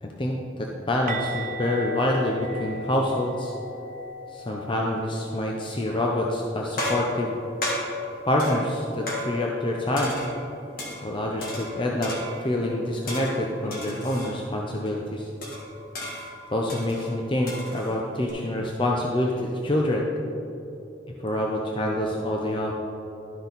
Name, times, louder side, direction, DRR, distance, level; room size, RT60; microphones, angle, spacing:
voice 1, 0.0-3.5 4.3-7.3 8.3-10.2 11.0-12.1 12.4-15.3 16.5-20.1 21.2-22.7, left 1 dB, 30° left, -1 dB, 0.6 m, -26 dB
sound 1, 1.1-6.9 7.1-7.4 7.7-7.9 11.1-11.2, equal, 50° right, 0.7 m, -38 dB
sound 2, 5.9-6.2 6.8-9.7 10.0-11.1 11.4-12.6 13.1-14.4 14.9-15.0 15.4-18.3, left 1 dB, 55° left, 1.9 m, -34 dB
12.0 x 6.2 x 4.0 m, 2.9 s
head